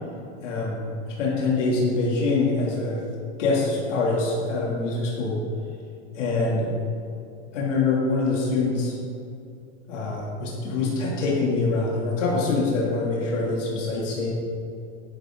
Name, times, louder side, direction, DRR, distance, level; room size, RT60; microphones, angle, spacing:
voice 1, 0.4-3.0 3.4-5.4 6.1-6.7 7.5-9.0 9.9-14.3, left 3 dB, 90° left, -4 dB, 3.1 m, -24 dB
11.0 x 11.0 x 3.9 m, 2.5 s
supercardioid pair, 155°, 36 cm